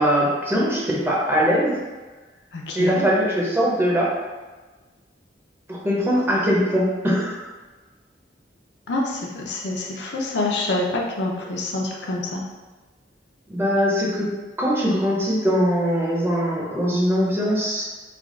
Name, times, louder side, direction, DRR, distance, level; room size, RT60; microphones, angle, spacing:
voice 1, 0.0-1.7 2.7-4.1 5.7-7.4 13.5-14.3 14.6-17.8, equal, 15° right, -4 dB, 0.6 m, -21 dB
voice 2, 2.5-3.0 8.9-12.4, left 2 dB, 70° left, -1 dB, 0.6 m, -26 dB
3.4 x 2.3 x 3.6 m, 1.3 s
head